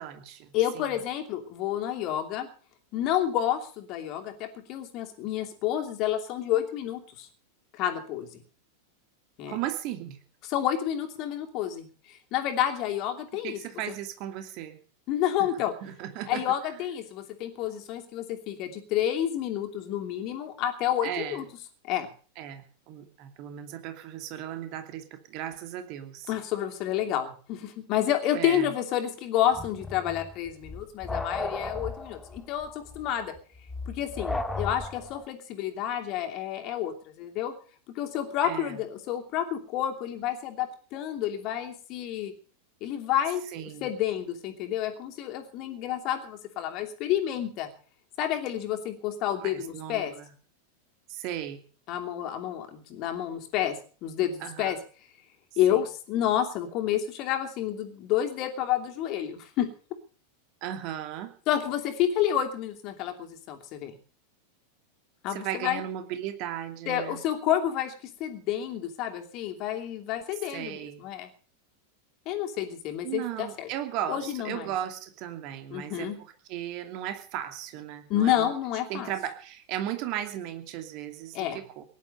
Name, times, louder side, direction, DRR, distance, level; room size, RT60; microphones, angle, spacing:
voice 1, 0.0-1.0 9.5-10.2 13.4-14.8 15.8-16.4 16.7-16.8 21.0-21.4 22.4-26.3 28.3-28.7 38.4-38.8 43.5-43.9 49.4-50.3 51.1-51.6 54.4-54.8 55.7-55.8 60.6-61.3 65.3-67.2 70.5-71.1 73.0-76.1 76.5-78.5 78.9-81.8, right 11 dB, 40° right, 7 dB, 2.7 m, -36 dB
voice 2, 0.5-2.5 2.9-7.3 7.7-8.3 9.4-9.6 10.5-13.6 15.1-15.7 16.3-21.4 21.8-22.1 26.3-33.3 33.9-37.5 37.9-42.3 42.8-43.4 43.8-47.7 48.2-50.1 51.9-54.8 55.6-59.7 61.5-63.9 65.2-65.8 66.9-67.9 68.2-71.3 72.3-73.7 74.1-74.7 75.7-76.2 78.1-79.1 81.3-81.6, left 11 dB, 40° left, 5 dB, 2.8 m, -29 dB
sound 1, 29.5-35.3, left 2 dB, 10° left, 1.6 m, -35 dB
18.5 x 11.0 x 6.7 m, 0.42 s
figure-of-eight pair, 90°, 0 cm